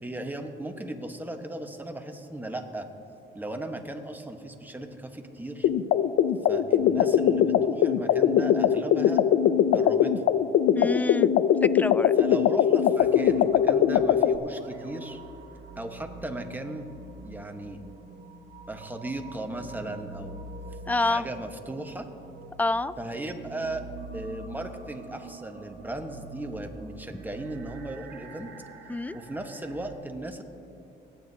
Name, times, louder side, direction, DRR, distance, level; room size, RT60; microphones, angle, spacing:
voice 1, 0.0-2.9 3.3-5.7 6.5-9.2 9.7-10.4 12.2-15.2 15.8-16.9 17.2-17.8 18.7-20.5 21.0-22.1 23.0-23.8 24.1-28.5 29.1-30.4, right 1 dB, 10° right, 4 dB, 1.1 m, -37 dB
sound 1, 5.6-14.4, left 9 dB, 70° left, 0.4 m, -21 dB
voice 2, 10.7-11.3 11.6-12.1 20.9-21.2 22.6-22.9 28.9-29.2, left 2 dB, 10° left, 16 dB, 0.3 m, -27 dB
sound 2, 13.0-29.9, right 2 dB, 75° right, 1.2 m, -45 dB
27.0 x 9.3 x 2.8 m, 2.9 s
cardioid pair, 90°, 20 cm